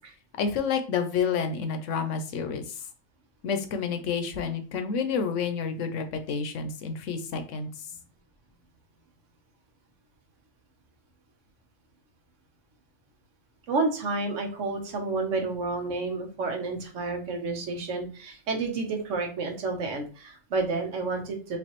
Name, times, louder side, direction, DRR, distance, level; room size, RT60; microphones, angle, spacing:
voice 1, 0.4-2.9 3.4-7.7, left 6 dB, 75° left, 8 dB, 1.0 m, -29 dB
voice 2, 13.7-21.6, right 3 dB, 75° right, 3 dB, 1.2 m, -30 dB
5.2 x 2.6 x 2.9 m, 0.37 s
omnidirectional pair, 1.3 m